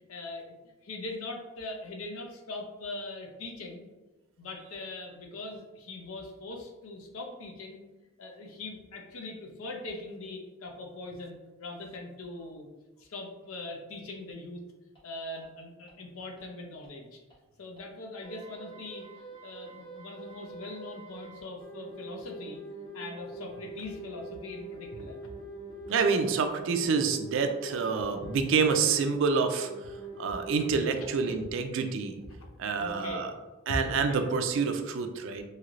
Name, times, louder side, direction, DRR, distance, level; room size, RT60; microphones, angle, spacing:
voice 1, 0.1-0.4 0.8-3.8 4.4-7.8 8.2-12.7 13.0-14.6 15.0-17.2 17.6-22.6 22.9-25.3 31.0-31.4 32.8-33.3 33.8-34.3, left 2 dB, 80° left, 2 dB, 0.6 m, -41 dB
sound 1, 15.0-15.1 15.4-15.5 15.9-16.0 16.4-16.5 16.8-16.9 17.3-17.4 17.8-17.9 18.2-31.4, right 2 dB, 25° left, 0.8 m, -44 dB
voice 2, 25.9-29.7 30.2-32.2 32.6-33.3 33.7-35.4, right 5 dB, 60° right, 7 dB, 0.3 m, -27 dB
3.1 x 2.8 x 2.5 m, 1.2 s
head